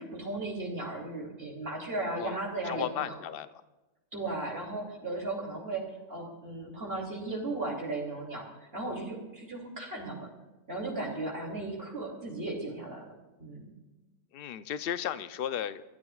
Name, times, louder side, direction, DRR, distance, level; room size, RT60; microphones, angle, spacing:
voice 1, 0.0-3.2 4.1-8.4 8.7-10.3 10.7-13.1 13.4-13.7, right 2 dB, 50° right, -2 dB, 3.0 m, -36 dB
voice 2, 2.7-3.5 14.3-15.8, left 10 dB, 55° left, 12 dB, 0.8 m, -34 dB
27.0 x 14.0 x 2.4 m, 1.1 s
omnidirectional pair, 1.3 m